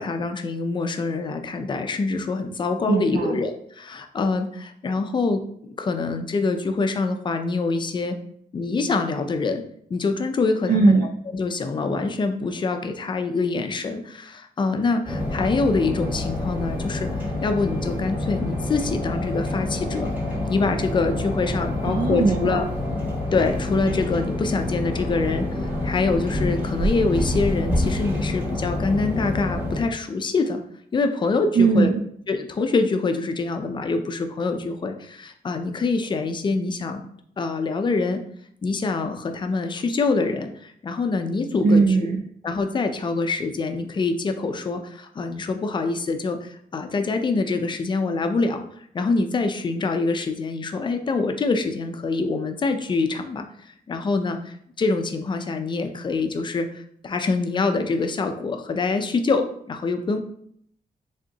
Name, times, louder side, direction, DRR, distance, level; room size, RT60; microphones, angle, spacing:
voice 1, 0.0-8.2 8.5-9.6 9.9-11.0 11.3-17.1 17.4-20.1 20.5-22.7 23.3-30.6 30.9-31.9 32.3-37.0 37.4-38.2 38.6-41.8 42.4-48.6 48.9-60.2, left 3 dB, 30° left, 6 dB, 0.4 m, -25 dB
voice 2, 2.9-3.4 10.7-11.1 21.8-22.6 31.5-32.1 41.6-42.2, right 4 dB, 55° right, 3 dB, 0.4 m, -19 dB
sound 1, 15.0-29.8, left 1 dB, 10° right, 1.1 m, -27 dB
5.1 x 3.6 x 2.8 m, 0.67 s
wide cardioid pair, 175°, 16 cm